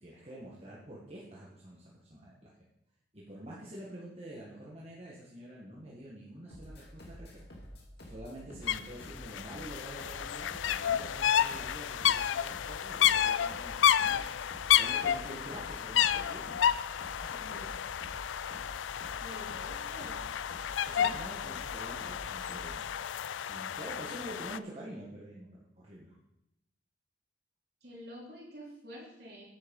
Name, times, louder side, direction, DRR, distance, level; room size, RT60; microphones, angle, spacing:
voice 1, 0.0-2.5 3.1-7.6 8.0-16.6 17.2-17.8 18.5-18.7 20.8-22.9 23.5-26.2, right 1 dB, 30° right, -5 dB, 1.6 m, -47 dB
sound 1, 6.5-22.8, equal, 60° left, 2.3 m, -49 dB
sound 2, 8.7-8.8 9.0-24.6, left 10 dB, 80° left, 0.4 m, -31 dB
voice 2, 19.2-20.3 27.8-29.5, equal, 55° right, -3 dB, 3.6 m, -48 dB
9.3 x 7.8 x 5.4 m, 0.85 s
head